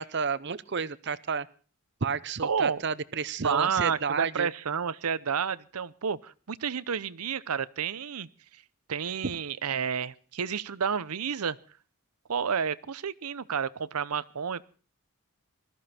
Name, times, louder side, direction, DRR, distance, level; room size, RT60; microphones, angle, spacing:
voice 1, 0.0-1.5 2.0-4.5 9.2-9.4, right 5 dB, 50° right, 17 dB, 0.7 m, -31 dB
voice 2, 2.4-2.8 3.4-8.3 8.9-11.6 12.3-14.6, right 6 dB, 85° right, 18 dB, 0.7 m, -30 dB
20.0 x 14.0 x 4.3 m, 0.39 s
head